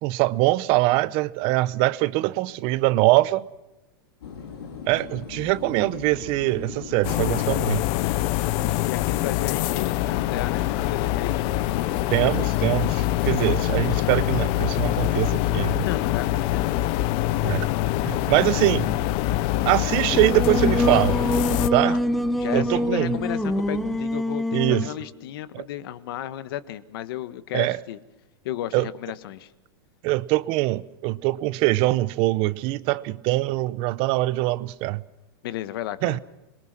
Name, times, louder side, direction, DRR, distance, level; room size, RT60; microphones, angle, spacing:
voice 1, 0.0-3.4 4.9-7.8 12.1-15.8 17.4-17.7 18.0-19.0 19.7-21.2 21.7-21.9 22.5-23.1 24.5-24.9 25.5-25.6 27.5-27.8 28.7-28.9 30.0-35.0 36.0-36.2, right 19 dB, 45° right, 0.8 m, -23 dB
sound 1, 4.2-24.0, left 6 dB, 85° left, 4.0 m, -39 dB
sound 2, 7.0-21.7, left 16 dB, 45° left, 0.8 m, -24 dB
voice 2, 8.8-11.4 15.8-16.8 21.8-22.0 22.4-28.0 28.4-29.5 35.4-36.2, left 12 dB, 65° left, 1.6 m, -34 dB
Singing, 20.1-25.0, equal, ahead, 0.8 m, -25 dB
27.0 x 23.0 x 6.2 m
supercardioid pair, 130°, 13 cm